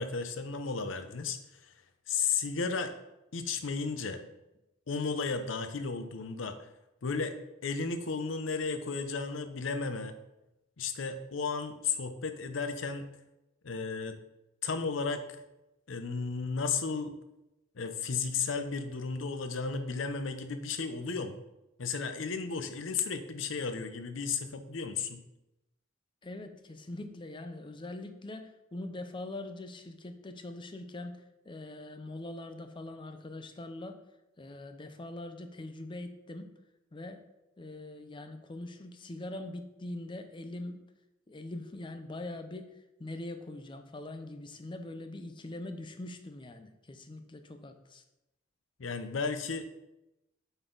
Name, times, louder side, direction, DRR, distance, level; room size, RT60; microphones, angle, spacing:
voice 1, 0.0-1.7 2.1-2.9 3.3-4.2 4.9-6.7 7.0-7.4 7.6-10.2 10.8-13.1 13.6-14.1 14.6-15.2 15.9-17.1 17.8-21.4 21.8-25.2 48.8-49.7, left 5 dB, 75° left, 9 dB, 0.6 m, -34 dB
voice 2, 26.2-31.2 31.5-34.0 34.4-36.5 36.9-37.2 37.6-40.8 41.3-42.7 43.0-48.0, left 2 dB, 25° left, 7 dB, 0.5 m, -42 dB
7.9 x 4.1 x 3.9 m, 0.93 s
head